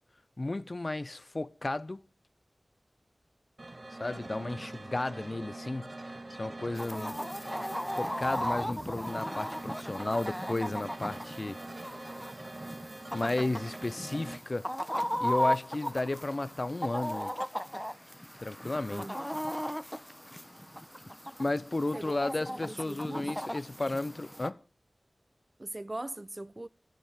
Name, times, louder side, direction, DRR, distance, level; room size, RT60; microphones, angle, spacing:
voice 1, 0.4-2.0 3.9-5.9 6.3-7.2 8.0-11.6 13.1-14.7 15.2-17.3 18.4-19.2 21.4-24.6, left 2 dB, 45° left, 0.6 m, -33 dB
sound 1, 3.6-14.4, right 2 dB, 50° right, 1.8 m, -44 dB
Chicken rooster, 6.7-24.5, equal, 5° left, 1.0 m, -37 dB
voice 2, 6.8-7.3 18.9-19.3 21.9-22.1 22.5-23.3 25.6-26.7, right 2 dB, 35° right, 0.6 m, -41 dB
15.0 x 12.0 x 5.0 m
wide cardioid pair, 45°, 0 cm